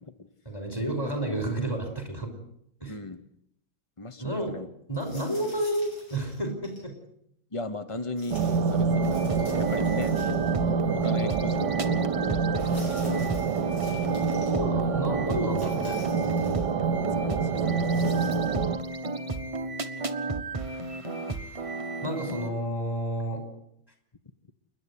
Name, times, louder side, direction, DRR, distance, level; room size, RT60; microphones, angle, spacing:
voice 1, 0.5-2.3 2.8-2.9 4.2-4.6 4.9-6.9 14.5-16.7 22.0-23.4, right 1 dB, 10° left, 4 dB, 5.3 m, -31 dB
voice 2, 2.9-3.2 4.0-4.7 7.5-10.2 10.9-13.3 14.3-14.5 17.1-18.1 18.5-19.0, left 2 dB, 40° left, 10 dB, 0.4 m, -38 dB
sound 1, 4.9-6.9 8.2-10.7 11.0-11.1 12.5-14.6 15.5-16.7 17.7-18.7, left 1 dB, 65° left, 7.9 m, -50 dB
sound 2, 8.3-18.8, right 5 dB, 60° right, 1.5 m, -27 dB
sound 3, 8.9-22.5, right 2 dB, 25° right, 0.8 m, -33 dB
29.0 x 11.0 x 9.9 m, 0.74 s
omnidirectional pair, 2.3 m